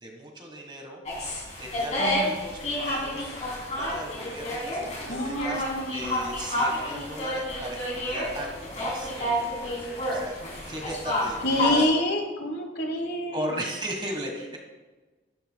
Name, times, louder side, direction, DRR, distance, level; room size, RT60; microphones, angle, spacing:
voice 1, 0.0-1.0 1.6-5.6 5.9-10.3 10.6-11.7 13.3-14.6, right 1 dB, 25° right, 2 dB, 1.3 m, -37 dB
sound 1, 1.1-11.9, left 1 dB, 40° left, 2.9 m, -30 dB
voice 2, 2.0-2.3 5.1-6.2 11.4-13.5, left 1 dB, 60° left, 4 dB, 1.3 m, -27 dB
12.0 x 9.1 x 2.2 m, 1.2 s
head